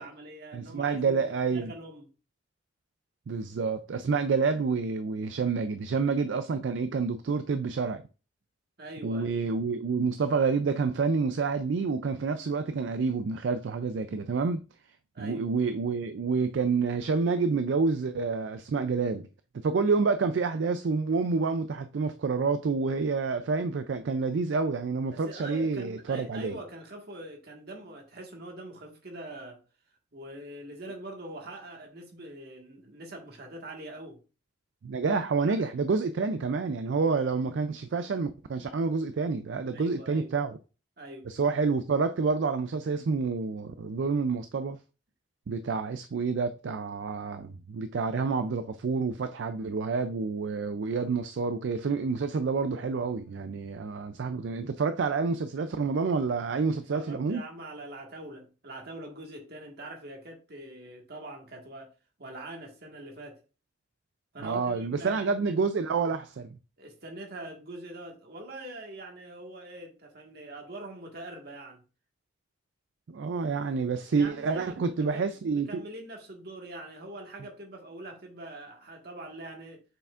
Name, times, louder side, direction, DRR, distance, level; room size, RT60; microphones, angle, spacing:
voice 1, 0.0-1.2 1.5-2.1 8.8-9.4 15.1-15.4 25.1-29.6 30.1-34.2 35.4-35.6 39.7-40.4 41.0-41.3 45.7-45.8 56.9-61.9 62.2-63.4 64.3-65.6 66.8-71.8 74.0-79.8, right 1 dB, 60° right, 1.6 m, -43 dB
voice 2, 0.5-1.7 3.3-8.0 9.0-14.6 15.2-19.3 19.5-26.5 34.8-40.6 41.3-44.8 45.5-57.4 64.4-66.6 73.1-75.8, right 4 dB, 75° right, 0.4 m, -28 dB
6.8 x 5.7 x 2.5 m
head